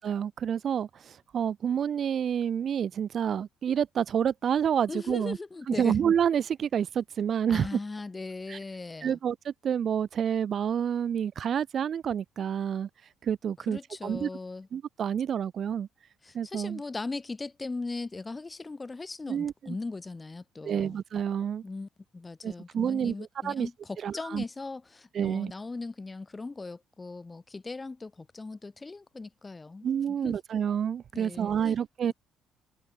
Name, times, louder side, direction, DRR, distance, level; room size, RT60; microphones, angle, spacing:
voice 1, 0.0-5.4 5.7-7.7 8.5-8.6 9.0-12.9 13.2-14.3 14.7-15.9 16.3-16.8 19.3-19.8 20.6-21.6 22.4-23.1 23.4-23.7 24.0-24.4 25.1-25.5 29.8-32.1, right 8 dB, 45° right, 0.3 m, -28 dB
voice 2, 4.9-5.9 7.5-9.2 13.7-14.7 16.2-21.0 21.6-30.3 31.1-31.7 32.1-32.2, left 3 dB, 20° left, 4.0 m, -39 dB
figure-of-eight pair, 50°, 0 cm